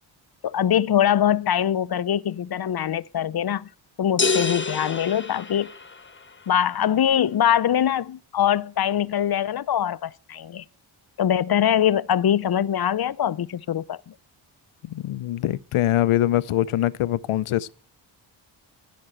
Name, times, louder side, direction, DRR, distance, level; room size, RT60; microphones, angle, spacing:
voice 1, 0.4-3.7 4.0-5.7 6.5-10.6 11.2-14.1, left 10 dB, 50° left, 0.7 m, -23 dB
sound 1, 4.2-6.2, left 4 dB, 25° left, 1.2 m, -27 dB
voice 2, 14.9-17.7, left 13 dB, 85° left, 0.7 m, -23 dB
15.5 x 6.2 x 7.7 m
cardioid pair, 70°, 49 cm